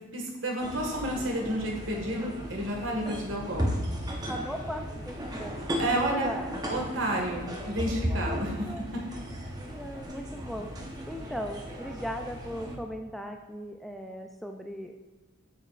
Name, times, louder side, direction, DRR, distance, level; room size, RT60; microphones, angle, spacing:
voice 1, 0.1-3.9 4.2-4.4 5.8-6.3 6.7-9.0, right 1 dB, 70° right, 0 dB, 1.7 m, -31 dB
sound 1, 0.6-12.8, equal, 20° right, 0.9 m, -35 dB
voice 2, 4.1-5.6 5.9-6.7 8.6-8.9 9.7-10.8 11.0-15.0, equal, ahead, 3 dB, 0.3 m, -38 dB
8.4 x 7.0 x 2.4 m, 1.2 s
head